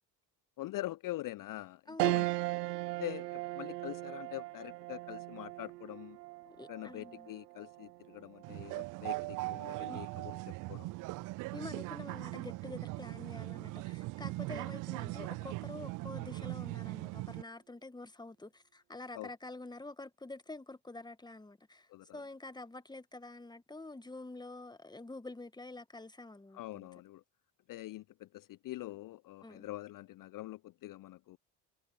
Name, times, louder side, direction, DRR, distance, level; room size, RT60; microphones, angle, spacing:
voice 1, 0.6-2.3 3.0-6.2 6.7-10.9 19.1-19.3 21.9-22.2 26.5-27.2 27.7-31.4, left 16 dB, 40° left, 0.9 m, -44 dB
voice 2, 1.9-2.2 6.4-7.4 9.9-10.0 11.5-26.9 29.4-29.7, left 2 dB, 10° left, 1.8 m, -47 dB
sound 1, 2.0-11.6 12.1-12.2 13.5-14.0, right 21 dB, 70° right, 1.1 m, -39 dB
sound 2, 8.4-17.4, right 23 dB, 40° right, 0.5 m, -40 dB
figure-of-eight pair, 60°, 49 cm